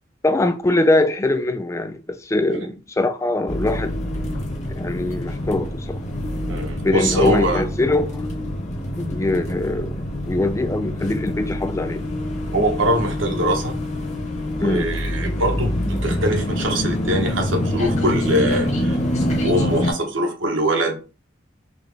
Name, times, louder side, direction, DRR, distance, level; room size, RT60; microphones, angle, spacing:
voice 1, 0.2-4.0 4.8-6.0 6.8-8.2 9.0-10.0 10.3-12.0 14.6-14.9, left 2 dB, 15° left, 0.3 m, -22 dB
sound 1, 3.5-19.9, left 1 dB, 35° left, 0.8 m, -25 dB
voice 2, 6.5-7.6 12.5-13.8 14.6-21.0, right 1 dB, 70° right, 0.9 m, -23 dB
3.8 x 2.9 x 3.3 m
head